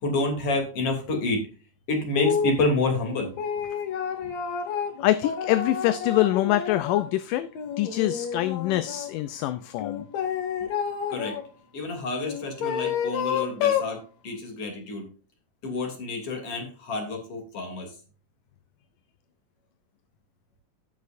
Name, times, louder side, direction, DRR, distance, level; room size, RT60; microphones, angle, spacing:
voice 1, 0.0-1.4 1.9-3.3 11.1-11.4 11.7-15.1 15.6-17.9, left 2 dB, 45° left, 2 dB, 3.8 m, -28 dB
sound 1, 2.2-2.6 3.1-7.1 7.5-9.1 9.8-11.4 12.2-13.9, left 7 dB, 60° left, 2.3 m, -29 dB
voice 2, 5.0-7.5 7.8-10.1, left 15 dB, 80° left, 12 dB, 2.1 m, -25 dB
16.5 x 6.2 x 2.6 m, 0.37 s
omnidirectional pair, 4.0 m